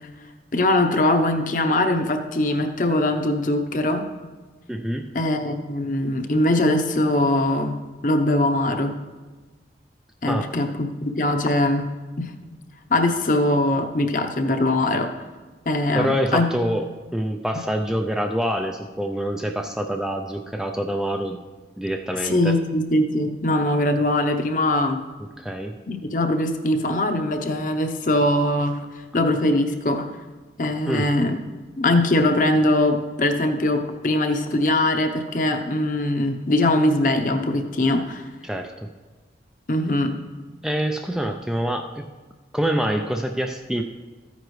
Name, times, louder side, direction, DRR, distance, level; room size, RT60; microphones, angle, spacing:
voice 1, 0.5-4.1 5.1-7.7 8.0-9.0 10.2-11.9 12.2-12.3 12.9-15.1 15.7-16.5 22.2-25.0 25.9-30.1 30.6-31.4 31.8-38.3 39.7-40.1, left 1 dB, 45° left, 5 dB, 0.7 m, -21 dB
voice 2, 4.7-5.1 10.3-10.5 15.9-16.8 17.1-21.4 21.8-22.6 25.4-25.8 30.9-31.1 38.4-38.9 40.6-42.0 42.5-43.8, equal, 5° right, 4 dB, 0.3 m, -26 dB
13.5 x 9.5 x 3.1 m, 1.3 s
head